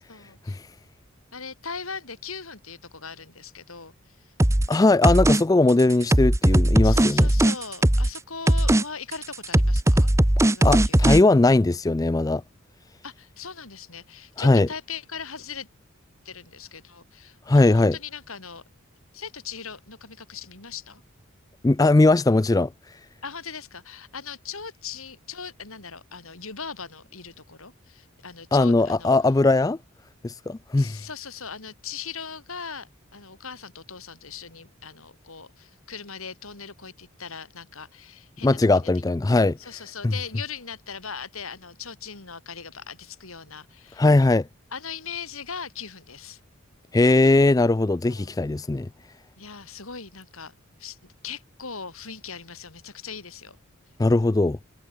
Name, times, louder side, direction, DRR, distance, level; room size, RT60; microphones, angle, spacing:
voice 1, 0.1-0.6 1.3-4.3 6.8-10.1 10.4-11.1 13.0-15.7 16.2-18.6 19.1-21.0 23.2-29.1 30.7-39.0 39.6-44.1 44.7-46.4 48.1-48.4 49.4-50.5 50.8-53.6, left 6 dB, 75° left, 4.9 m, -39 dB
sound 1, 4.4-4.7 5.0-5.4 5.7-8.2 8.5-8.8 9.1-11.2, right 1 dB, 15° right, 0.9 m, -19 dB
voice 2, 4.7-7.3 10.6-12.4 14.4-14.7 17.5-18.0 21.6-22.7 28.5-29.8 30.2-31.0 38.4-39.6 44.0-44.5 46.9-48.9 54.0-54.6, left 2 dB, 15° left, 0.3 m, -19 dB
head